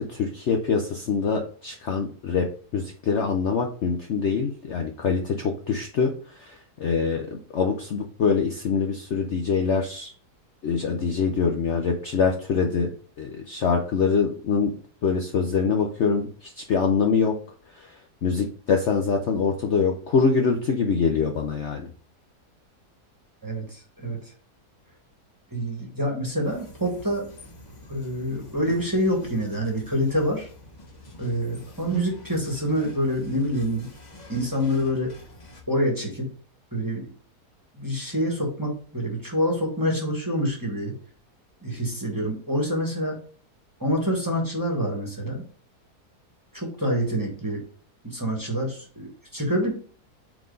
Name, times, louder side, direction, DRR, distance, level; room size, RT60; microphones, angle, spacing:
voice 1, 0.0-10.1 10.6-12.9 13.2-14.7 15.0-17.4 17.7-21.9, left 5 dB, 55° left, 3 dB, 0.8 m, -24 dB
voice 2, 23.4-24.2 25.5-27.3 27.9-30.5 31.2-33.9 34.3-35.1 35.7-36.3 36.7-37.1 37.7-41.0 41.6-43.2 43.8-45.4 46.5-47.6 48.0-49.7, equal, 15° right, 0 dB, 1.4 m, -26 dB
sound 1, 26.4-35.6, left 1 dB, 30° left, 1.0 m, -46 dB
4.6 x 4.0 x 5.2 m, 0.43 s
omnidirectional pair, 1.7 m